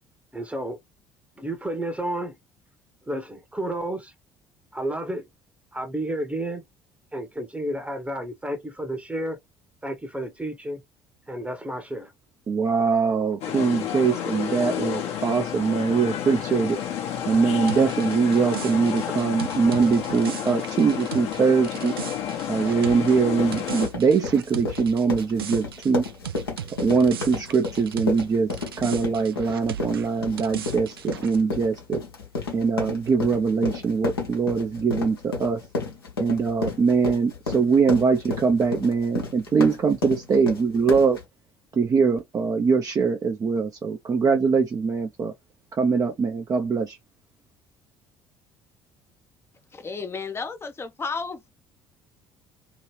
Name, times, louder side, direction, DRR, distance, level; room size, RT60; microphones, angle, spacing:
voice 1, 0.3-0.8 1.4-2.4 3.1-4.1 4.7-5.3 5.7-6.6 7.1-9.4 9.8-10.8 11.3-12.1, right 1 dB, 10° right, 1.0 m, -31 dB
voice 2, 12.5-16.8 17.3-21.9 22.5-26.0 26.8-32.0 32.5-35.6 36.2-41.2 41.7-45.3 45.7-47.0, right 5 dB, 30° right, 0.6 m, -22 dB
sound 1, 13.4-23.9, left 9 dB, 55° left, 1.0 m, -30 dB
sound 2, 17.7-28.3 28.5-31.4, right 9 dB, 80° right, 0.4 m, -38 dB
sound 3, 23.2-41.2, left 3 dB, 80° left, 1.1 m, -32 dB
voice 3, 49.7-51.5, left 4 dB, 20° left, 0.7 m, -33 dB
2.9 x 2.8 x 3.1 m
figure-of-eight pair, 55°, 12 cm